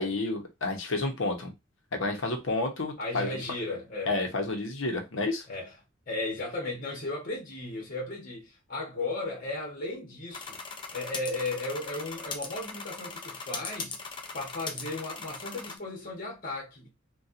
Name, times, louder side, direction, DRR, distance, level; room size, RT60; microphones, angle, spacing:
voice 1, 0.0-1.5 2.0-3.4 4.1-5.5, left 2 dB, 65° left, 0.8 m, -30 dB
voice 2, 3.0-4.2 5.5-5.7 6.1-10.6 10.9-14.1 14.3-16.9, left 2 dB, 40° left, 1.1 m, -35 dB
sound 1, 10.3-15.8, left 4 dB, 20° left, 0.4 m, -39 dB
4.1 x 2.3 x 2.5 m
head